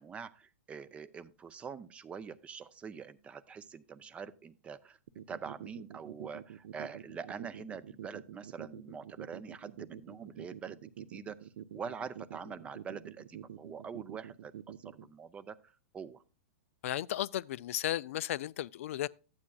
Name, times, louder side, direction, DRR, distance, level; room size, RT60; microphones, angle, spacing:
voice 1, 0.0-5.0 5.3-11.4 11.7-15.6 15.9-16.2, right 6 dB, 15° right, 0.4 m, -45 dB
sound 1, 5.1-15.1, right 10 dB, 70° right, 0.6 m, -46 dB
voice 2, 16.8-19.1, left 13 dB, 65° left, 0.3 m, -34 dB
12.5 x 8.5 x 2.3 m
hypercardioid pair, 140°, 8 cm